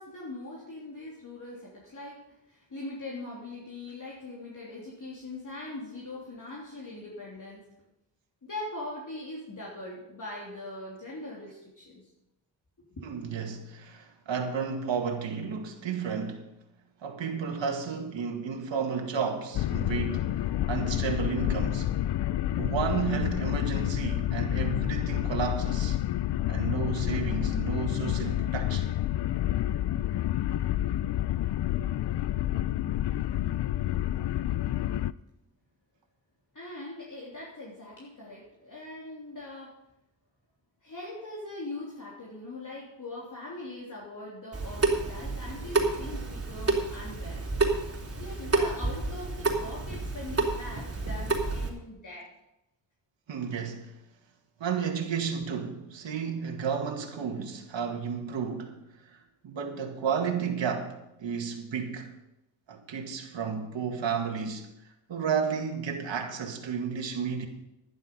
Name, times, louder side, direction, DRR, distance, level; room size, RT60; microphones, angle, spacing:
voice 1, 0.0-2.2 2.5-7.6 8.4-12.0 36.5-39.8 40.8-47.5 48.2-52.3, left 2 dB, 45° left, 3.3 m, -41 dB
voice 2, 13.0-16.4 17.0-20.4 20.7-21.9 22.6-26.0 26.5-28.9 53.3-53.9 54.6-62.1 62.7-64.7 65.1-67.5, right 6 dB, 75° right, 2.0 m, -32 dB
sound 1, 19.5-35.1, left 13 dB, 65° left, 0.5 m, -29 dB
Water tap faucet / Sink (filling or washing) / Drip, 44.5-51.7, right 3 dB, 30° right, 3.5 m, -29 dB
11.0 x 11.0 x 5.4 m
cardioid pair, 65°, 45 cm